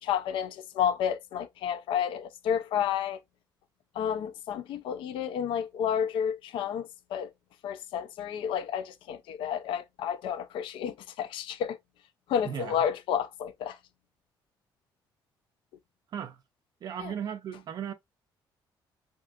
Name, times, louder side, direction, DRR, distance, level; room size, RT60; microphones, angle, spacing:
voice 1, 0.0-3.2 3.9-7.3 7.6-11.8 12.3-13.8 17.0-17.1, left 8 dB, 80° left, 0.4 m, -31 dB
voice 2, 12.4-12.8 16.1-16.4 16.8-17.9, right 8 dB, 50° right, 0.4 m, -36 dB
3.4 x 2.7 x 2.3 m
cardioid pair, 150°, 9 cm